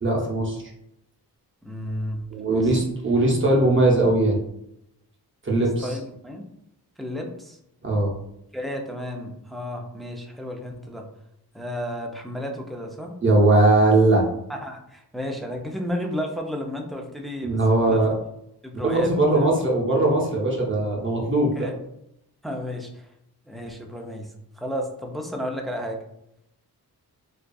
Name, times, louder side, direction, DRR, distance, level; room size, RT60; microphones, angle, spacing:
voice 1, 0.0-0.6 2.3-4.4 5.4-6.0 7.8-8.1 13.2-14.2 17.4-18.1 18.7-21.7, right 2 dB, 30° right, -2 dB, 0.6 m, -20 dB
voice 2, 1.6-2.2 2.5-2.7 5.5-6.5 7.0-7.6 8.5-11.1 11.5-13.1 14.5-18.0 18.6-19.5 21.5-21.7 22.4-23.1 23.5-26.0, equal, ahead, 1 dB, 0.3 m, -32 dB
2.6 x 2.3 x 2.2 m, 0.79 s
cardioid pair, 70°, 40 cm